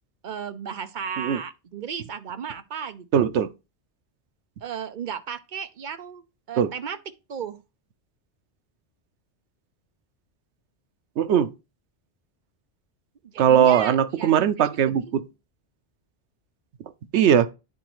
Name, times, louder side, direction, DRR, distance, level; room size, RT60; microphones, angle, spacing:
voice 1, 0.2-3.1 4.6-7.0 7.3-7.6 13.2-15.2, right 7 dB, 55° right, 0.7 m, -35 dB
voice 2, 3.1-3.5 6.6-6.7 11.2-11.5 13.4-15.2 17.1-17.5, right 9 dB, 85° right, 0.9 m, -19 dB
9.9 x 4.0 x 3.0 m
omnidirectional pair, 1.1 m